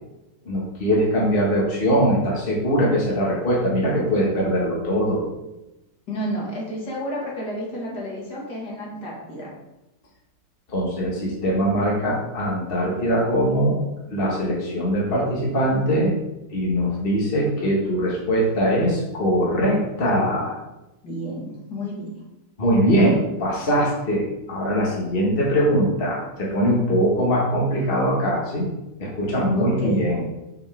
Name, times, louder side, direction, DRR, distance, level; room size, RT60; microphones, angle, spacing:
voice 1, 0.5-5.2 10.7-13.8 14.1-16.1 16.5-20.6 22.6-28.7 29.0-30.2, equal, 30° left, -4 dB, 1.8 m, -21 dB
voice 2, 6.1-9.5 21.0-22.1 29.6-30.0, equal, 55° left, -4 dB, 2.5 m, -31 dB
7.0 x 6.9 x 3.6 m, 0.94 s
omnidirectional pair, 2.1 m